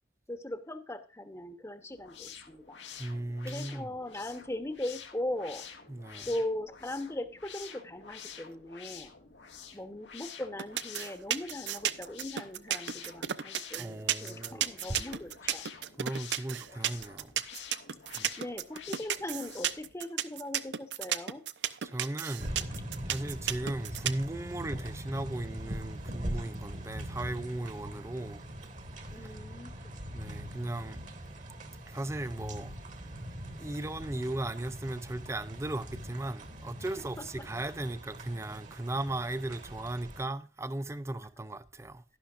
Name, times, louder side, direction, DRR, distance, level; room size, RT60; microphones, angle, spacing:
voice 1, 0.3-2.8 3.4-5.6 6.3-9.1 9.7-15.6 18.4-21.4 29.1-29.8 37.2-37.3, left 1 dB, 15° left, 1.1 m, -39 dB
sound 1, 1.9-19.9, left 7 dB, 85° left, 1.7 m, -49 dB
voice 2, 3.0-3.9 5.9-6.3 13.8-15.0 16.0-17.3 18.1-18.4 21.8-22.6 23.1-28.5 29.1-29.4 30.1-31.0 31.9-32.7 33.6-42.0, right 1 dB, 15° right, 0.5 m, -37 dB
sound 2, 10.6-24.2, right 10 dB, 80° right, 0.6 m, -32 dB
sound 3, 22.4-40.2, equal, 45° right, 1.6 m, -42 dB
11.5 x 11.5 x 2.5 m
head